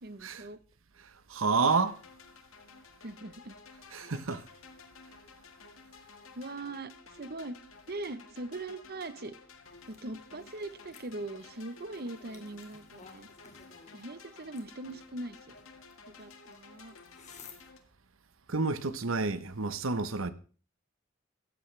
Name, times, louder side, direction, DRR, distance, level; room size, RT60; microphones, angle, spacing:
voice 1, 0.0-0.6 3.0-3.6 6.3-7.6 7.9-9.3 9.9-13.3 13.9-15.5 16.1-16.9, right 2 dB, 50° right, 1.0 m, -41 dB
voice 2, 1.3-2.0 3.9-4.4 18.5-20.3, right 4 dB, 75° right, 1.0 m, -29 dB
sound 1, 1.7-17.8, left 4 dB, 80° left, 1.9 m, -54 dB
sound 2, 9.6-17.6, left 5 dB, 35° left, 2.5 m, -57 dB
16.5 x 14.0 x 3.4 m
head